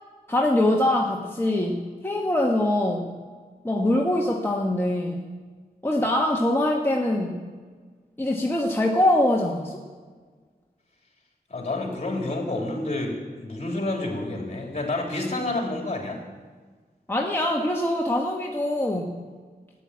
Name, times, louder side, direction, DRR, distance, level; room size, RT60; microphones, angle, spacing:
voice 1, 0.3-3.2 3.6-5.3 5.8-7.4 8.2-9.8 17.1-19.2, left 1 dB, 15° left, -1 dB, 1.5 m, -23 dB
voice 2, 11.5-16.2, left 2 dB, 45° left, 0 dB, 3.7 m, -29 dB
13.0 x 10.0 x 8.3 m, 1.5 s
wide cardioid pair, 70°, 16 cm